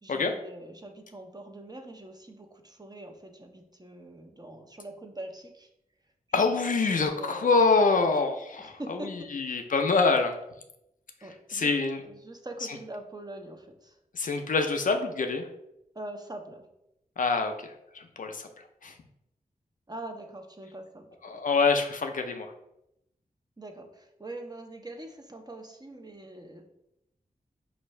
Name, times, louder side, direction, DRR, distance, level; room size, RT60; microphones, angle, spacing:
voice 1, 0.0-5.7 6.3-6.4 6.9-7.6 8.6-9.3 11.2-11.7 12.0-14.0 15.9-16.7 19.9-21.1 23.6-26.7, right 1 dB, 25° right, 3 dB, 0.7 m, -43 dB
voice 2, 6.3-10.4 11.5-12.0 14.1-15.5 17.2-17.7 17.9-18.5 18.8-18.9 21.2-22.5, left 4 dB, 60° left, 5 dB, 0.5 m, -25 dB
4.5 x 2.5 x 3.2 m, 0.83 s
cardioid pair, 45°, 15 cm